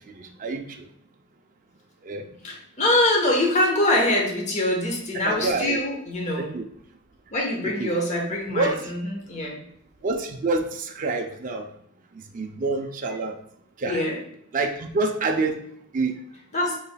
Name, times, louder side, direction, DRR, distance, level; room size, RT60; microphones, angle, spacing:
voice 1, 0.1-0.6 2.0-2.3 5.3-5.8 6.4-6.6 7.8-7.9 8.5-8.8 10.0-11.7 12.2-13.4 13.8-14.0 14.5-15.6 15.9-16.1, right 3 dB, 35° right, 2 dB, 0.4 m, -27 dB
voice 2, 2.4-6.6 7.3-9.6 13.8-14.2 16.5-16.8, left 1 dB, 35° left, -1 dB, 0.9 m, -24 dB
5.5 x 4.0 x 2.2 m, 0.71 s
head